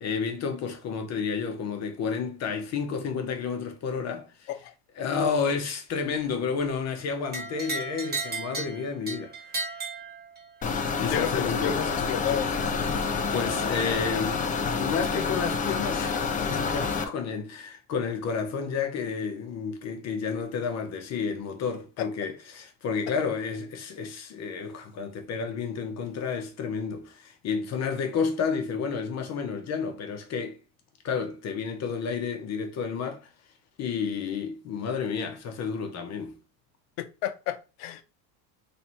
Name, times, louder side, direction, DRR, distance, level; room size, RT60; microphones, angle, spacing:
voice 1, 0.0-4.5 5.0-9.8 11.0-11.8 12.9-30.6 31.0-33.3 33.8-36.4, left 5 dB, 35° left, 0.8 m, -31 dB
sound 1, 7.3-10.7, right 3 dB, 20° right, 1.2 m, -35 dB
sound 2, 10.6-17.0, left 5 dB, 20° left, 0.4 m, -28 dB
voice 2, 11.1-12.7 22.0-22.1 37.2-38.0, left 11 dB, 65° left, 0.7 m, -32 dB
3.2 x 2.8 x 4.4 m
supercardioid pair, 125°, 43 cm